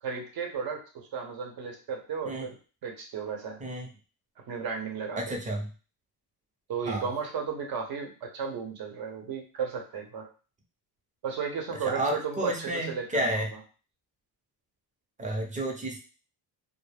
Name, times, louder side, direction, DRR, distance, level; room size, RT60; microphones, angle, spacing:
voice 1, 0.0-2.6 2.8-3.6 4.5-5.3 6.7-10.3 11.2-13.6, right 6 dB, 60° right, 2 dB, 0.8 m, -34 dB
voice 2, 5.2-5.7 6.9-7.0 12.0-13.5 15.2-16.0, right 1 dB, 20° right, 2 dB, 0.5 m, -31 dB
2.3 x 2.0 x 3.3 m, 0.36 s
cardioid pair, 125°, 41 cm